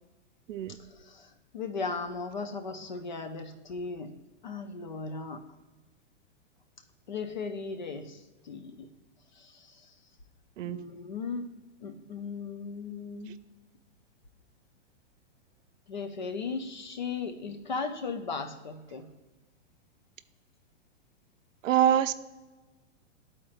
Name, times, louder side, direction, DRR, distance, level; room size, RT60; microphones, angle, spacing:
voice 1, 0.8-4.1 4.4-5.4 7.1-8.9 9.4-9.9 10.6-11.5 11.8-13.4 15.9-19.1, left 4 dB, 40° left, 7 dB, 0.4 m, -37 dB
voice 2, 10.6-10.9 21.6-22.1, right 10 dB, 85° right, 13 dB, 0.5 m, -25 dB
12.5 x 4.3 x 2.4 m, 1.2 s
hypercardioid pair, 180°, 37 cm